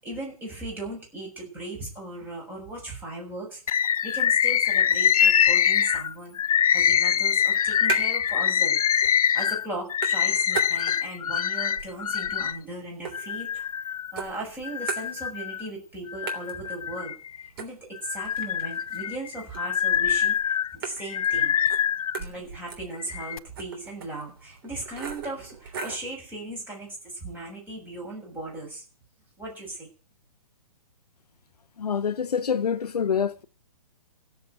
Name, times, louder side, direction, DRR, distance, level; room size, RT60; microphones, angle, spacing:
voice 1, 0.0-8.8 9.3-13.7 14.1-17.1 17.6-21.6 22.2-28.8 29.4-29.9, right 2 dB, 10° right, 7.0 m, -37 dB
Bird, 3.7-12.6 13.1-14.1 14.6-15.7 16.1-17.5 18.0-22.2 22.9-23.4, left 9 dB, 70° left, 0.7 m, -24 dB
sound 1, 7.3-8.4 8.7-9.4 9.6-11.2 11.6-13.8 14.2-15.6 15.9-16.0 16.3-26.1, right 4 dB, 40° right, 3.2 m, -38 dB
voice 2, 31.8-33.4, left 7 dB, 90° left, 1.0 m, -26 dB
16.0 x 7.5 x 8.2 m
hypercardioid pair, 155°, 19 cm